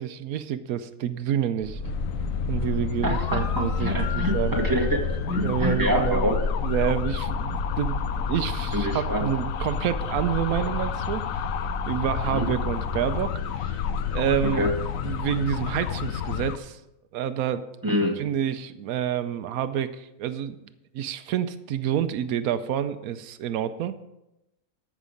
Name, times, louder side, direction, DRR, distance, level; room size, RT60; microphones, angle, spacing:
voice 1, 0.0-1.8 2.5-4.6 5.4-6.3 6.6-11.2 11.9-13.8 14.1-14.7 15.0-16.8 17.1-17.6 18.2-20.6 20.9-24.0, right 10 dB, 90° right, 11 dB, 1.1 m, -28 dB
Boat Water vehicle, 1.6-13.2, equal, 55° left, 3.0 m, -34 dB
sound 1, 1.8-16.6, left 8 dB, 75° left, 1.0 m, -29 dB
voice 2, 3.0-6.4 8.7-9.3 12.3-12.5 14.4-14.7 17.8-18.2, right 1 dB, 15° right, 0 dB, 1.7 m, -26 dB
14.0 x 6.2 x 5.1 m, 0.91 s
omnidirectional pair, 1.5 m